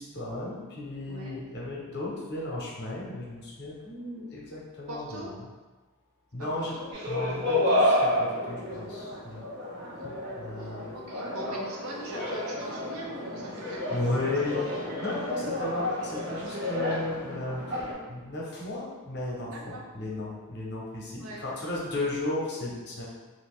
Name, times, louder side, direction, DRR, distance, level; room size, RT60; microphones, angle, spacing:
voice 1, 0.0-5.3 6.3-9.5 10.0-10.9 13.9-14.7 15.0-17.6 18.1-23.1, left 2 dB, 50° left, -4 dB, 0.8 m, -34 dB
voice 2, 1.0-1.4 4.1-4.3 4.9-5.3 6.4-6.5 6.7-6.9 7.2-7.3 9.8-10.1 10.6-14.3 15.3-15.4 19.4-19.8 21.2-21.4, right 1 dB, 70° right, -2 dB, 0.6 m, -42 dB
sound 1, 6.9-17.9, left 1 dB, 50° right, 1.2 m, -30 dB
2.7 x 2.5 x 3.7 m, 1.3 s
head